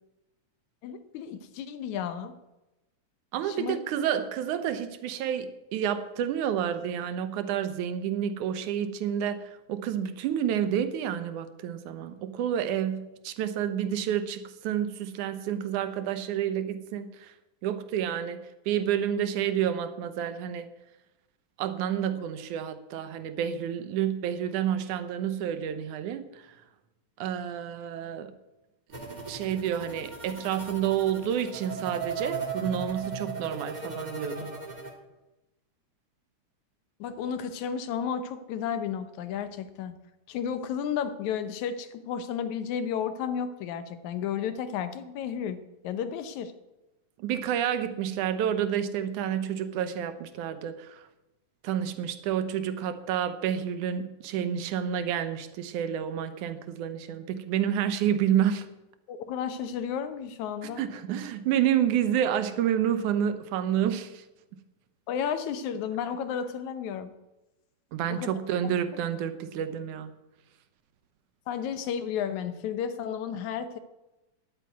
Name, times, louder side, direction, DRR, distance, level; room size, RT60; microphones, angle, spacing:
voice 1, 0.8-2.3 3.4-3.8 37.0-39.9 40.3-45.6 45.8-46.5 59.1-60.8 65.1-67.1 68.1-68.3 71.5-73.8, left 8 dB, 80° left, 11 dB, 2.3 m, -32 dB
voice 2, 3.3-17.3 17.6-20.7 21.6-26.5 27.2-28.3 29.3-34.5 47.2-51.0 51.6-58.7 60.6-64.2 67.9-70.2, right 9 dB, 85° right, 11 dB, 2.4 m, -29 dB
sound 1, 28.9-34.9, right 4 dB, 20° right, 1.3 m, -37 dB
9.9 x 9.0 x 9.4 m, 0.99 s
omnidirectional pair, 3.4 m